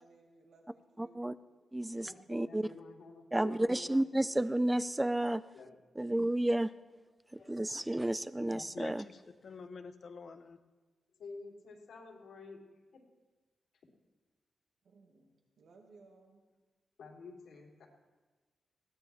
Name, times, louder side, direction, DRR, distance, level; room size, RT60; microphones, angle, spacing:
voice 1, 0.0-1.3 14.8-16.4, right 3 dB, 75° right, 1 dB, 2.1 m, -61 dB
voice 2, 1.0-1.3 1.7-2.7 3.3-5.4 6.0-6.7 7.5-9.0, right 1 dB, 10° right, 15 dB, 0.5 m, -31 dB
voice 3, 2.0-4.0 5.5-6.1 7.3-7.7 11.2-13.0 15.1-15.4 17.0-17.9, left 4 dB, 85° left, -1 dB, 3.4 m, -51 dB
voice 4, 8.5-10.6, left 4 dB, 55° left, 8 dB, 1.1 m, -48 dB
21.0 x 16.5 x 3.5 m, 1.3 s
wide cardioid pair, 120°, 0 cm